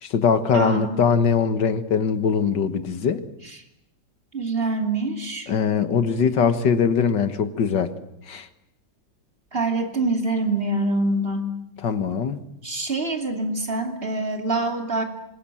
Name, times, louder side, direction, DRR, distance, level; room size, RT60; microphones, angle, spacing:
voice 1, 0.0-3.2 5.5-7.9 8.3-8.5 11.8-12.4, left 6 dB, 80° left, 10 dB, 2.2 m, -21 dB
voice 2, 0.5-1.0 3.4-3.6 4.3-5.5 9.5-11.5 12.6-15.0, right 2 dB, 30° right, 4 dB, 2.9 m, -25 dB
25.5 x 22.0 x 9.0 m, 0.80 s
omnidirectional pair, 1.9 m